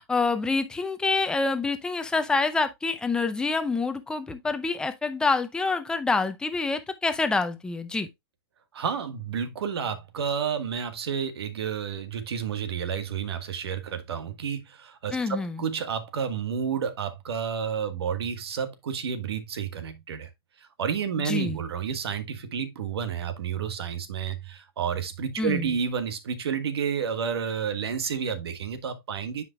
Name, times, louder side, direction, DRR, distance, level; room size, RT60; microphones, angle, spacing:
voice 1, 0.0-8.1 15.1-15.7 21.2-21.6 25.4-25.7, left 3 dB, 5° left, 0.6 m, -27 dB
voice 2, 8.7-20.3 20.6-29.4, right 7 dB, 80° right, 1.5 m, -30 dB
9.7 x 5.2 x 2.3 m
hypercardioid pair, 155°, 13 cm